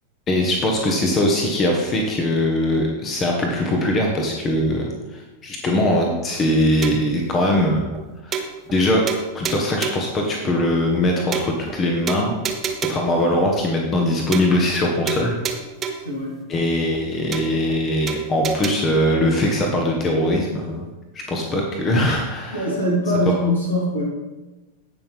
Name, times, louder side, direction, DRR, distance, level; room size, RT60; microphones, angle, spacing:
voice 1, 0.3-7.9 8.2-8.4 8.7-9.1 9.3-12.4 12.9-15.4 16.5-20.9 21.1-22.6, left 1 dB, 25° left, 1 dB, 1.4 m, -21 dB
sound 1, 6.8-7.2 7.6-7.7 7.9-8.0 8.3-8.8 9.1-10.1 10.6-10.7 10.9-11.0 11.3-11.8 12.1-13.1 13.6-13.7 13.9-14.1 14.3-14.8 15.1-16.1 16.6-16.7 16.9-17.0 17.3-17.8 18.1-18.7, right 6 dB, 25° right, 1.1 m, -29 dB
voice 2, 22.5-24.0, left 1 dB, 75° left, -3 dB, 3.5 m, -22 dB
17.5 x 5.9 x 3.6 m, 1.1 s
figure-of-eight pair, 90°, 0 cm